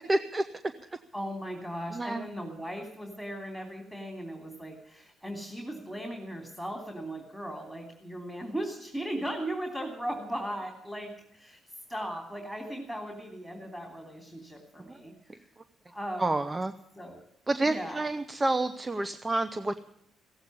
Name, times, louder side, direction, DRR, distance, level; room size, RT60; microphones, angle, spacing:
voice 1, 0.1-0.4 1.9-2.3 14.8-15.0 15.6-15.7 16.2-16.7 17.5-19.8, right 2 dB, 20° right, 11 dB, 0.8 m, -29 dB
voice 2, 1.1-11.6 11.9-15.5 15.9-16.4 17.0-17.2 17.6-18.1, right 1 dB, 5° right, 1 dB, 3.3 m, -38 dB
16.5 x 8.2 x 9.6 m, 0.77 s
cardioid pair, 90°, 0 cm